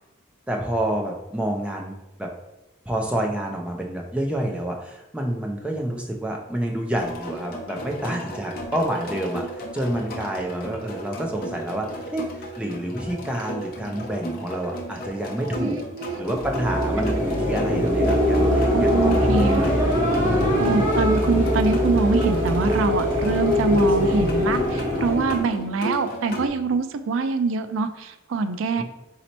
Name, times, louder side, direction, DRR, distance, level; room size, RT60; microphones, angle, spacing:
voice 1, 0.5-2.3 2.9-15.8 16.2-19.9 28.8-28.9, right 1 dB, 5° right, 0 dB, 0.4 m, -28 dB
sound 1, 7.0-26.5, right 1 dB, 45° left, 0.8 m, -35 dB
voice 2, 15.5-16.2 18.7-19.7 20.6-28.8, right 4 dB, 90° right, 10 dB, 0.4 m, -24 dB
sound 2, 16.2-25.5, left 1 dB, 25° right, 1.3 m, -22 dB
4.1 x 2.8 x 4.3 m, 0.97 s
head